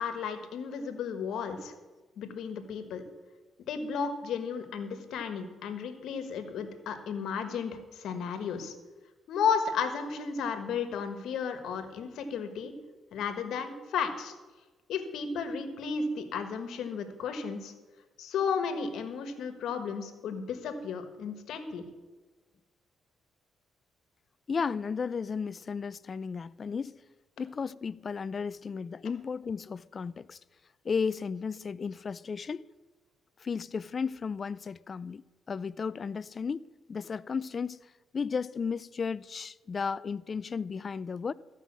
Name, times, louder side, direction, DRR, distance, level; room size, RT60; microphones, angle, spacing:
voice 1, 0.0-1.7 2.2-3.0 3.7-8.7 9.3-12.7 13.1-14.3 14.9-17.7 18.2-21.9, left 6 dB, 75° left, 1.4 m, -33 dB
voice 2, 24.5-27.0 27.4-30.4 30.8-32.7 33.4-35.2 35.5-37.8 38.1-41.3, left 5 dB, 40° left, 0.3 m, -34 dB
13.5 x 5.5 x 7.3 m
cardioid pair, 90°, 0 cm